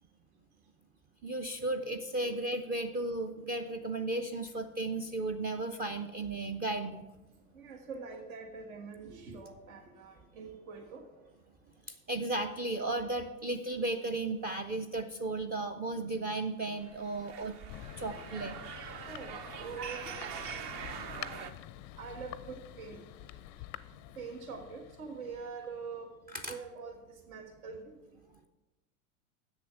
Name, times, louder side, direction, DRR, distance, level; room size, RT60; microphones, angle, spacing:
voice 1, 1.2-7.0 11.9-17.5 18.0-18.6 26.3-26.5, right 2 dB, 20° right, 7 dB, 0.4 m, -35 dB
voice 2, 7.5-11.1 19.0-20.1 22.0-23.0 24.1-26.1 26.4-28.0, right 5 dB, 75° right, 3 dB, 1.5 m, -44 dB
sound 1, 16.8-21.5, right 7 dB, 45° right, 0.9 m, -43 dB
Thunder, 17.7-26.0, left 16 dB, 40° left, 0.4 m, -48 dB
7.9 x 6.8 x 6.7 m, 1.1 s
hypercardioid pair, 95°, 42 cm